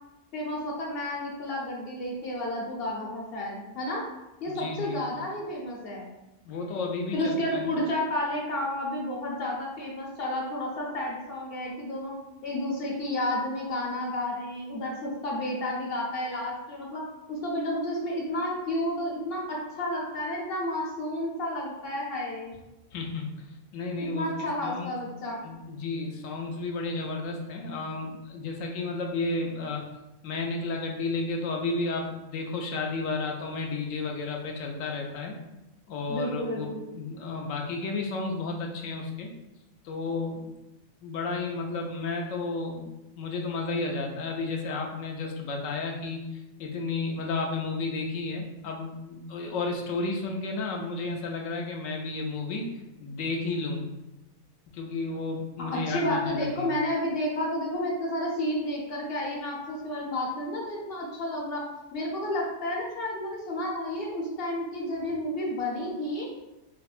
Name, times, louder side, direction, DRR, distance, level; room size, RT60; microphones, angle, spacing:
voice 1, 0.3-4.0 4.4-6.1 7.1-12.1 12.4-17.0 17.3-22.5 24.1-25.4 36.1-36.8 55.6-61.6 61.9-66.3, left 1 dB, 55° left, -2 dB, 0.9 m, -31 dB
voice 2, 4.5-5.0 6.5-7.7 22.9-23.3 23.7-24.2 24.6-25.0 25.4-29.8 30.2-35.4 35.9-36.7 36.9-39.3 39.8-40.5 41.0-42.9 43.2-52.7 53.0-53.8 54.7-56.7, left 3 dB, 85° left, 1 dB, 1.0 m, -32 dB
4.9 x 2.1 x 2.4 m, 0.96 s
omnidirectional pair, 1.3 m